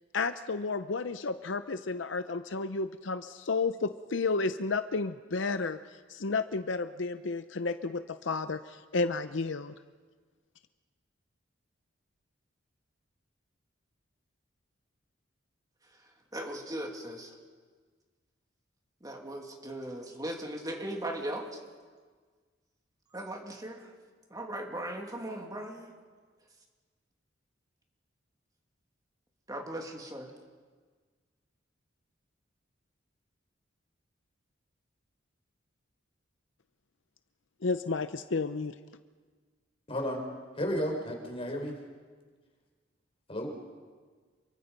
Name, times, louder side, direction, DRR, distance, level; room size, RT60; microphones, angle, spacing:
voice 1, 0.1-9.7 37.6-38.8, left 4 dB, 70° left, 11 dB, 0.7 m, -32 dB
voice 2, 16.3-17.3 19.0-21.4 23.1-23.9 24.3-25.9 29.5-30.3, right 1 dB, 20° right, 1 dB, 2.6 m, -38 dB
voice 3, 39.9-40.2 40.6-41.7 43.3-43.5, equal, 30° left, 2 dB, 4.8 m, -32 dB
28.0 x 24.0 x 5.3 m, 1.5 s
head